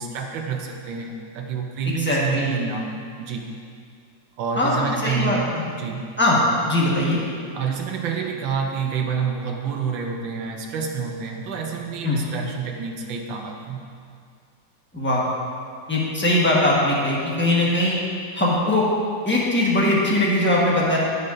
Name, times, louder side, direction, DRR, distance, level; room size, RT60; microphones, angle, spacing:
voice 1, 0.0-3.5 4.4-6.1 7.5-13.8, right 6 dB, 90° right, 1 dB, 1.5 m, -28 dB
voice 2, 1.8-2.5 4.6-5.6 6.2-6.4 6.7-7.2 12.0-12.2 14.9-15.2 15.9-18.0 18.3-18.9 19.2-21.0, left 1 dB, 5° left, -5 dB, 1.0 m, -20 dB
14.0 x 5.6 x 2.6 m, 2.3 s
omnidirectional pair, 2.0 m